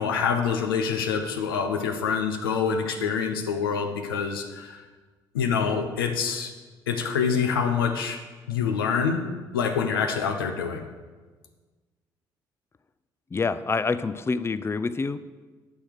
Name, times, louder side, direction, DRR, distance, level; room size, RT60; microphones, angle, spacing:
voice 1, 0.0-4.8 5.3-6.5 6.9-8.2 8.5-9.2 9.5-10.8, left 6 dB, 80° left, 6 dB, 0.9 m, -26 dB
voice 2, 13.3-15.2, left 4 dB, 20° left, 13 dB, 0.5 m, -27 dB
10.0 x 6.3 x 6.5 m, 1.4 s
figure-of-eight pair, 50°, 12 cm